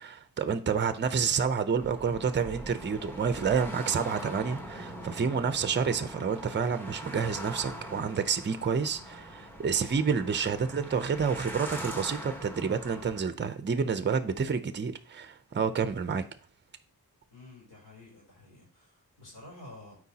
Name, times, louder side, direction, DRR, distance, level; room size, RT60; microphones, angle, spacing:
voice 1, 0.0-16.2, right 6 dB, 30° right, 0.6 m, -29 dB
sound 1, 1.8-13.2, right 1 dB, 5° left, 1.3 m, -42 dB
voice 2, 17.3-20.0, left 2 dB, 85° left, 3.5 m, -50 dB
12.5 x 4.6 x 2.8 m
wide cardioid pair, 85°, 37 cm